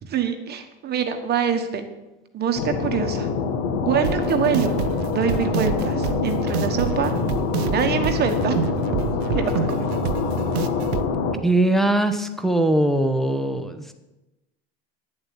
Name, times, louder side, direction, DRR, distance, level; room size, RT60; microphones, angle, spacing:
voice 1, 0.0-1.9 2.3-3.3 3.7-4.8 5.1-7.1 7.6-8.6 9.3-9.8, right 8 dB, 30° right, 6 dB, 1.3 m, -25 dB
sound 1, 2.6-11.4, left 5 dB, 50° left, 1.5 m, -25 dB
sound 2, 4.0-11.1, right 10 dB, 75° right, 0.9 m, -28 dB
voice 2, 11.4-13.9, right 1 dB, ahead, 7 dB, 0.9 m, -21 dB
10.0 x 7.6 x 8.5 m, 1.0 s
supercardioid pair, 140°, 32 cm